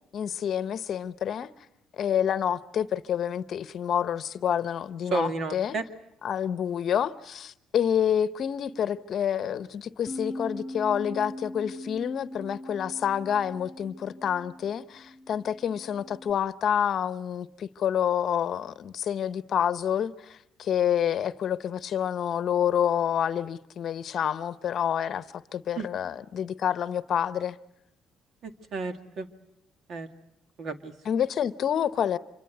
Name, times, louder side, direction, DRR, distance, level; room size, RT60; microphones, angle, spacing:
voice 1, 0.1-1.5 1.9-5.8 6.2-27.6 31.0-32.2, left 9 dB, 55° left, 0.9 m, -28 dB
voice 2, 5.1-5.8 25.8-25.9 28.4-29.3 29.9-30.1 30.6-30.9, right 3 dB, 55° right, 2.1 m, -32 dB
Bass guitar, 10.1-16.3, left 1 dB, 25° left, 1.7 m, -41 dB
26.5 x 24.0 x 8.0 m
cardioid pair, 110°, 0 cm